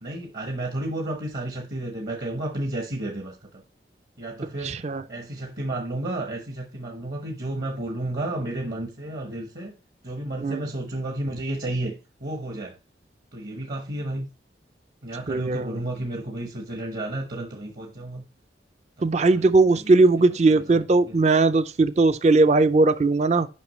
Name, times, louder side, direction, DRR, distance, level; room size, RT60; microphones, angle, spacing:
voice 1, 0.0-3.6 4.2-4.8 5.1-9.7 10.0-11.9 12.2-12.7 13.3-14.3 15.0-18.2 19.2-20.0 20.4-21.2, right 1 dB, 55° right, 1.1 m, -32 dB
voice 2, 4.6-5.0 10.4-10.6 15.3-15.7 19.0-23.5, right 3 dB, 35° right, 0.4 m, -19 dB
8.4 x 5.5 x 3.1 m
head